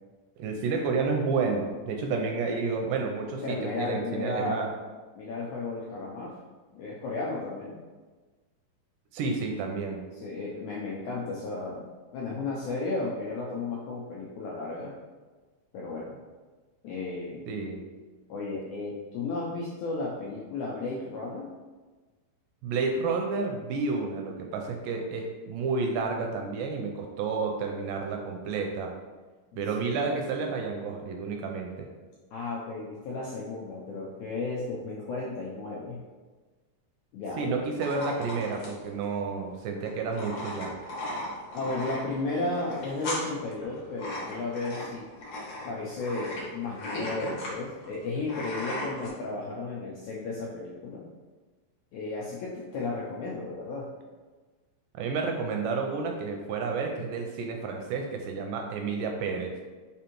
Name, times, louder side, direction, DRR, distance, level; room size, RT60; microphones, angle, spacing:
voice 1, 0.4-4.7 9.1-10.0 17.5-17.8 22.6-28.9 29.6-31.9 37.4-40.7 55.0-59.5, right 4 dB, 80° right, 2 dB, 2.0 m, -30 dB
voice 2, 3.4-4.7 5.1-6.4 6.7-7.8 10.1-11.9 12.1-14.9 15.7-16.2 16.8-17.4 18.3-21.5 29.5-30.2 32.3-36.0 37.1-37.6 41.5-45.0 45.6-51.1 51.9-53.9, left 3 dB, 90° left, -4 dB, 1.7 m, -34 dB
sound 1, 37.8-49.1, left 1 dB, 60° left, 1.7 m, -37 dB
5.1 x 3.5 x 2.9 m, 1.3 s
omnidirectional pair, 4.0 m